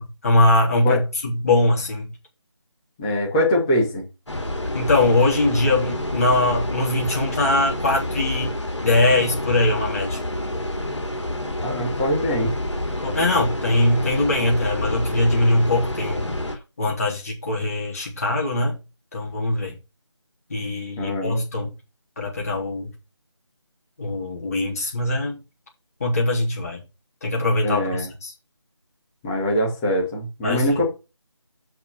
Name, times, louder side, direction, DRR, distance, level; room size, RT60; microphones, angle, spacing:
voice 1, 0.0-2.1 4.7-8.5 8.8-10.2 13.0-16.4 16.8-18.7 19.1-19.8 20.5-21.7 22.2-22.9 24.0-25.4 26.0-26.8 27.2-28.3 30.4-30.7, left 2 dB, 30° left, 3.4 m, -21 dB
voice 2, 3.0-4.1 11.6-12.6 21.0-21.4 27.6-28.1 29.2-30.8, left 1 dB, 10° left, 2.3 m, -23 dB
sound 1, 4.3-16.6, left 1 dB, 75° left, 2.5 m, -28 dB
5.9 x 5.8 x 6.9 m
figure-of-eight pair, 160°, 15 cm